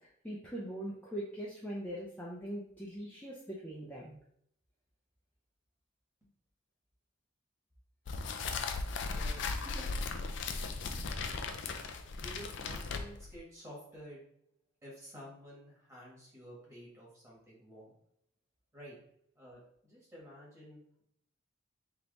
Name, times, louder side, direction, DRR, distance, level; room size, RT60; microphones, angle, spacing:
voice 1, 0.2-4.2, right 1 dB, 10° left, -6 dB, 0.5 m, -41 dB
sound 1, 8.1-13.4, left 4 dB, 60° left, 0.4 m, -37 dB
voice 2, 9.1-9.9 12.2-14.2 14.8-17.9 18.7-19.0 19.4-21.0, equal, 15° right, -6 dB, 1.4 m, -51 dB
3.4 x 2.9 x 3.9 m, 0.69 s
head